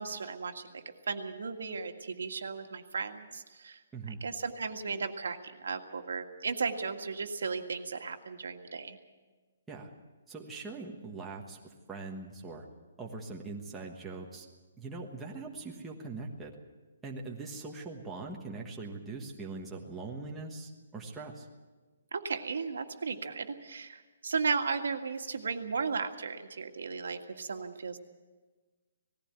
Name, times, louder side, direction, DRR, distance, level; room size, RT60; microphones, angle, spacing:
voice 1, 0.0-3.8 4.1-9.0 22.1-28.0, right 5 dB, 80° right, 5 dB, 1.9 m, -35 dB
voice 2, 10.3-11.6 11.9-12.7 13.0-14.4 14.8-16.5 17.0-21.5, right 3 dB, 5° right, -2 dB, 1.3 m, -42 dB
19.0 x 15.5 x 8.9 m, 1.3 s
hypercardioid pair, 175°, 0 cm